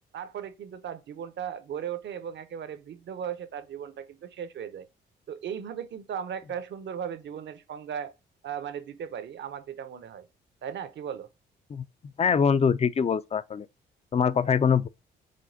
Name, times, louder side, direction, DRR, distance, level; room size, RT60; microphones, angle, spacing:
voice 1, 0.1-4.9 5.3-8.1 8.4-10.3 10.6-11.3, right 8 dB, 60° right, 0.7 m, -37 dB
voice 2, 12.2-13.7 14.1-14.9, left 6 dB, 30° left, 0.5 m, -23 dB
5.1 x 3.4 x 2.7 m
supercardioid pair, 55°, 21 cm